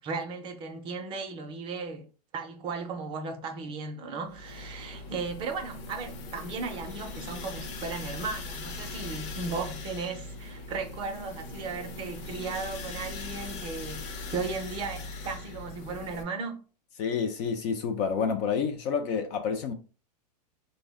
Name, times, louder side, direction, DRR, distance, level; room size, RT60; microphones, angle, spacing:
voice 1, 0.0-2.1 2.3-16.6, right 4 dB, 25° right, 0.5 m, -36 dB
sound 1, 4.3-16.2, left 3 dB, 45° left, 0.7 m, -40 dB
voice 2, 17.0-19.7, left 6 dB, 30° left, 0.4 m, -29 dB
3.3 x 2.1 x 3.5 m
hypercardioid pair, 145°, 21 cm